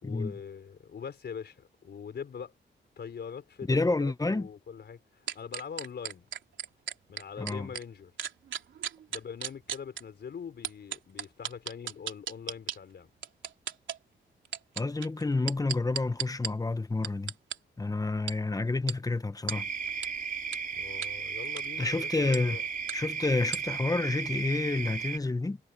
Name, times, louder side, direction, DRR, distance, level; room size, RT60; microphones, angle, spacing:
voice 1, 0.0-2.5 3.0-6.3 7.1-8.1 9.1-13.1 20.7-22.6, left 7 dB, 65° left, 4.3 m, -43 dB
voice 2, 3.7-4.5 7.4-7.7 14.8-17.3 17.8-19.7 21.8-22.6 22.9-25.6, left 3 dB, 20° left, 1.0 m, -29 dB
sound 1, 5.3-7.8 8.2-10.0 10.6-12.8 13.2-14.0 14.5-16.5 17.0-17.6 18.3-18.4 18.9-19.0 19.5-19.6 20.0-20.1 20.5-20.6 21.0-21.1 21.5-21.7 22.3-22.4 22.9-23.0 23.5-23.6, right 8 dB, 90° right, 3.3 m, -35 dB
sound 2, 19.5-25.2, right 6 dB, 45° right, 4.1 m, -35 dB
cardioid pair, 85°, 19 cm